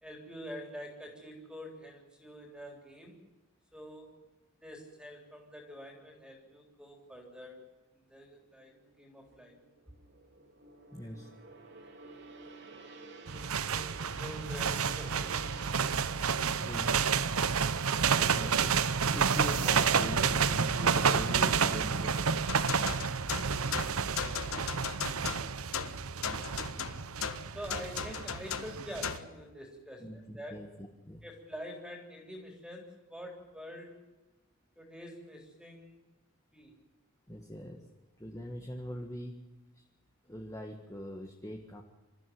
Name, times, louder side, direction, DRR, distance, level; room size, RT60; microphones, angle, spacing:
voice 1, 0.0-3.2 3.7-4.2 4.6-7.7 7.9-9.5 14.2-15.6 27.5-30.1 30.3-30.6 31.2-34.0 34.8-36.0 36.5-36.8, equal, 5° right, 2 dB, 3.7 m, -46 dB
Gong, 8.2-20.7 21.0-21.3, right 3 dB, 50° right, 2.7 m, -52 dB
voice 2, 10.9-11.3 16.6-16.9 18.2-18.9 19.1-22.3 30.0-31.2 37.3-37.8 38.2-39.4 39.7-39.8 40.2-41.8, equal, 15° left, 2 dB, 1.6 m, -41 dB
sound 1, 13.3-29.2, right 6 dB, 75° right, 0.9 m, -30 dB
sound 2, 22.5-29.3, left 6 dB, 70° left, 1.3 m, -37 dB
26.5 x 14.0 x 9.5 m, 1.1 s
head